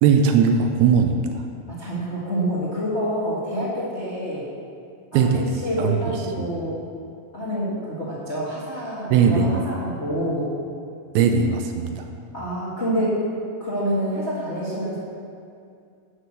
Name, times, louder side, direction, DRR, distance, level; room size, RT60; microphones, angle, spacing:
voice 1, 0.0-1.4 5.1-6.5 9.1-9.7 11.2-12.1, right 6 dB, 80° right, 5 dB, 2.4 m, -19 dB
voice 2, 1.7-4.4 5.1-6.8 7.3-10.5 12.3-13.2 13.6-15.0, equal, 35° left, -9 dB, 1.1 m, -27 dB
9.7 x 6.2 x 7.6 m, 2.4 s
omnidirectional pair, 4.7 m